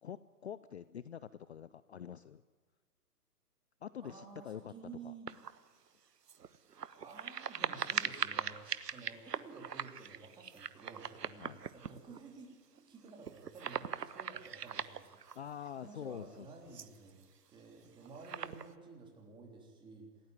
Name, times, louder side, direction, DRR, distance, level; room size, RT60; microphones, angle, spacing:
voice 1, 0.0-2.4 3.8-4.7 5.0-5.1 11.4-11.6 15.4-16.7, left 9 dB, 45° left, 16 dB, 0.6 m, -46 dB
voice 2, 4.0-5.3 7.0-15.1 15.8-17.2 17.5-20.1, right 4 dB, 10° right, 1 dB, 3.5 m, -52 dB
sound 1, 5.3-5.7 6.3-12.2 12.8-12.9 13.0-15.7 16.7-17.2 17.9-18.7, right 7 dB, 75° right, 1.2 m, -41 dB
26.5 x 16.5 x 9.3 m, 1.5 s
hypercardioid pair, 145°, 48 cm